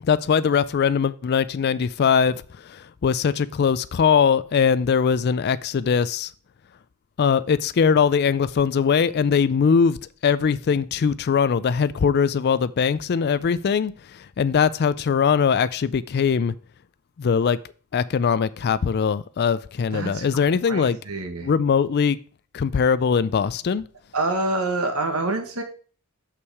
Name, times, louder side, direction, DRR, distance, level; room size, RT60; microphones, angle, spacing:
voice 1, 0.0-6.3 7.2-10.0 10.2-16.5 17.2-17.6 17.9-21.0 21.4-22.2 22.5-23.8, left 6 dB, 45° left, 0.3 m, -21 dB
voice 2, 19.9-21.5 24.1-25.6, right 2 dB, 80° right, 1.4 m, -27 dB
6.4 x 5.9 x 4.7 m
head